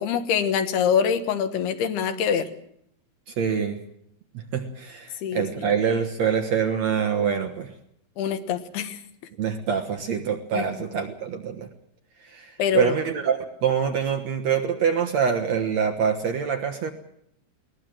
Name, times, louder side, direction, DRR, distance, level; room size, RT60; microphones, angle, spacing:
voice 1, 0.0-2.5 5.2-5.7 8.2-9.0 10.5-10.8 12.6-12.9, left 7 dB, 85° left, 9 dB, 3.3 m, -25 dB
voice 2, 3.4-3.8 4.5-7.7 9.4-11.7 12.3-16.9, right 7 dB, 60° right, 5 dB, 2.0 m, -25 dB
21.5 x 19.0 x 7.7 m, 0.70 s
omnidirectional pair, 4.5 m